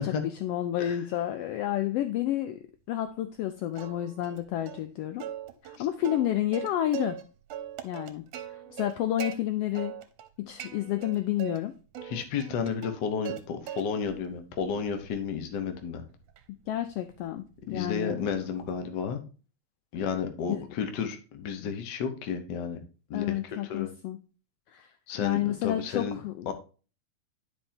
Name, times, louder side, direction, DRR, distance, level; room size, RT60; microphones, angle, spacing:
voice 1, 0.0-2.6 2.9-5.3 5.6-7.2 7.8-8.2 8.5-10.0 10.4-11.7 16.7-18.2 23.1-24.2 24.7-24.9 25.2-26.5, left 12 dB, 85° left, 9 dB, 1.3 m, -30 dB
Plucked string instrument, 3.8-4.4 4.7-4.8 5.2-7.2 7.5-9.4 9.8-10.3 10.6-11.6 11.9-13.4 13.7-14.2 14.6-18.8, right 10 dB, 70° right, 1.8 m, -41 dB
voice 2, 12.0-16.0 17.7-19.2 19.9-22.8 23.1-23.9 25.1-26.2 26.5-26.6, left 6 dB, 65° left, 7 dB, 1.0 m, -32 dB
10.0 x 5.4 x 2.7 m, 0.35 s
omnidirectional pair, 3.3 m